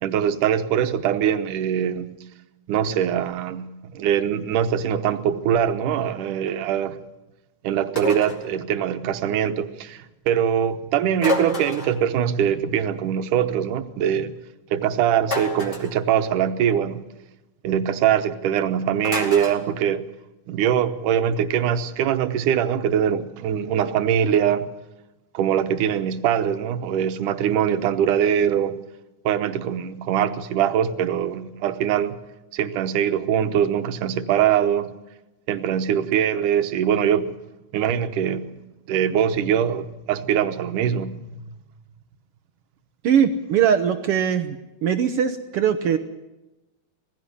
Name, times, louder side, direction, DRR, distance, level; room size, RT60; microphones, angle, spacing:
voice 1, 0.0-2.1 2.7-3.7 3.9-7.0 7.6-14.3 14.7-17.0 17.6-20.0 20.5-24.7 25.3-28.8 29.3-32.2 32.5-34.9 35.5-37.3 37.7-38.5 38.9-41.6, right 9 dB, 90° right, 10 dB, 2.5 m, -22 dB
sound 1, 8.0-8.5 11.2-12.0 15.2-15.9 19.0-19.6, left 2 dB, 35° left, 2.9 m, -28 dB
voice 2, 43.0-44.6 44.8-46.0, right 8 dB, 75° right, 9 dB, 1.4 m, -20 dB
18.5 x 16.0 x 9.9 m, 1.0 s
omnidirectional pair, 3.6 m